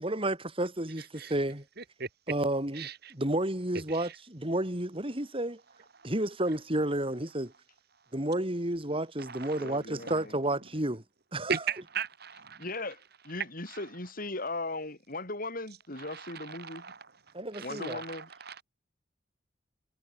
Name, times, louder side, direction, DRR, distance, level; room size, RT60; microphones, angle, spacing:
voice 1, 0.0-1.6 2.3-5.6 6.0-7.5 8.1-11.0 11.3-11.6 17.3-18.0, right 1 dB, 30° right, 4.1 m, -31 dB
voice 2, 1.8-2.1 2.7-3.1 3.9-4.2 5.9-6.1 9.2-10.2 11.5-12.7 13.7-13.9 16.0-17.1 17.5-18.6, right 6 dB, 55° right, 3.6 m, -38 dB
voice 3, 9.6-10.4 12.6-13.0 13.2-16.9 17.6-18.3, left 2 dB, 50° left, 6.4 m, -38 dB
head